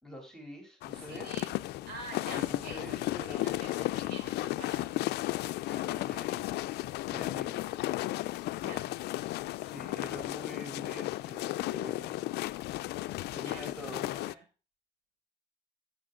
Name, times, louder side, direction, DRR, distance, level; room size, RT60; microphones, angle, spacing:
voice 1, 0.0-1.5 2.2-3.6 5.7-6.8 7.1-7.8 9.6-12.2 13.3-14.2, equal, 5° left, 2 dB, 3.0 m, -46 dB
sound 1, 0.8-14.3, left 17 dB, 75° left, 0.4 m, -34 dB
voice 2, 1.1-1.5 1.9-2.8 3.4-4.9 8.6-8.9 13.4-13.7 14.1-14.4, right 4 dB, 70° right, 1 dB, 5.7 m, -46 dB
14.0 x 6.7 x 3.8 m, 0.34 s
cardioid pair, 110°, 17 cm